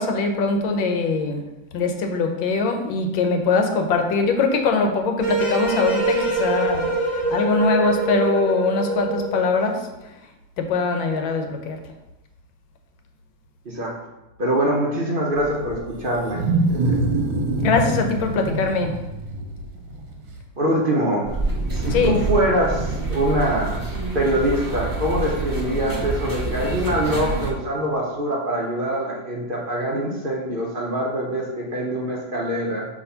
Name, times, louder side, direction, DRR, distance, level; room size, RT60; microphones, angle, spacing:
voice 1, 0.0-1.4 1.7-9.9 10.6-11.8 17.6-19.0 21.9-22.1, left 3 dB, 80° left, 4 dB, 1.5 m, -22 dB
sound 1, 5.2-9.5, right 2 dB, 5° left, 1.6 m, -24 dB
voice 2, 14.4-16.4 16.9-17.0 20.6-21.3 21.7-23.8 24.1-32.9, right 1 dB, 45° right, -2 dB, 0.7 m, -24 dB
Wild animals, 15.4-20.4, right 2 dB, 80° right, 1.6 m, -25 dB
sound 2, 21.2-27.5, right 2 dB, 15° right, 1.0 m, -27 dB
6.0 x 3.1 x 5.6 m, 1.0 s
omnidirectional pair, 2.1 m